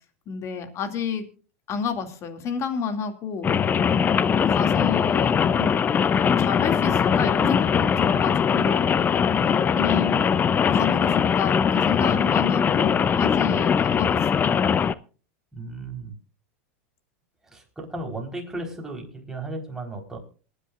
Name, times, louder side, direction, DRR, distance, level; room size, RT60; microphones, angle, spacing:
voice 1, 0.3-1.2 1.7-4.1 4.5-5.9 6.4-8.8 9.4-10.4 10.7-14.5, left 6 dB, 40° left, 7 dB, 2.4 m, -30 dB
Rain, 3.4-14.9, left 7 dB, 25° left, 0.5 m, -21 dB
voice 2, 15.5-16.1 17.4-20.2, right 2 dB, 5° right, 1 dB, 4.1 m, -35 dB
27.0 x 10.0 x 2.5 m, 0.38 s
hypercardioid pair, 110°, 7 cm